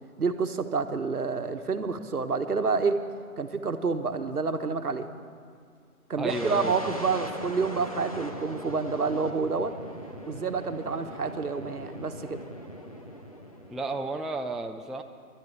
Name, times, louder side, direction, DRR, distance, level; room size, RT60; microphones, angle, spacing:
voice 1, 0.2-3.0 3.4-5.1 6.1-9.7 10.3-12.4, right 4 dB, 80° right, 7 dB, 1.2 m, -28 dB
voice 2, 6.2-6.9 13.7-15.0, right 2 dB, ahead, 4 dB, 0.3 m, -33 dB
sound 1, 6.3-14.1, equal, 25° left, 0.7 m, -40 dB
11.5 x 9.0 x 9.4 m, 2.1 s
figure-of-eight pair, 160°, 44 cm